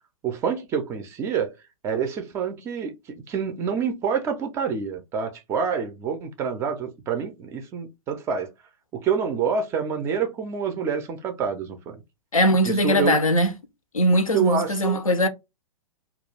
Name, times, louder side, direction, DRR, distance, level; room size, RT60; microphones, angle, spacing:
voice 1, 0.2-1.5 1.8-8.5 8.9-12.0 12.6-13.2 14.3-15.0, right 6 dB, 15° right, 0.4 m, -27 dB
voice 2, 12.3-13.5 13.9-15.3, equal, 80° left, 0.6 m, -20 dB
2.3 x 2.2 x 3.1 m
figure-of-eight pair, 110°, 17 cm